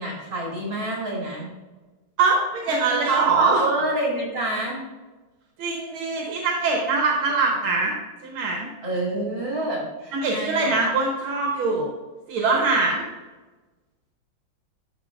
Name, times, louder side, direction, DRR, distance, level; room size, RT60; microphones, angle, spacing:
voice 1, 0.0-1.5 2.7-4.8 8.8-10.9, right 2 dB, 65° right, -4 dB, 3.2 m, -27 dB
voice 2, 2.2-3.6 5.6-7.9 8.2-8.7 10.1-11.9 12.3-13.0, right 4 dB, 90° right, -1 dB, 1.9 m, -23 dB
12.5 x 4.6 x 2.5 m, 1.2 s
omnidirectional pair, 2.2 m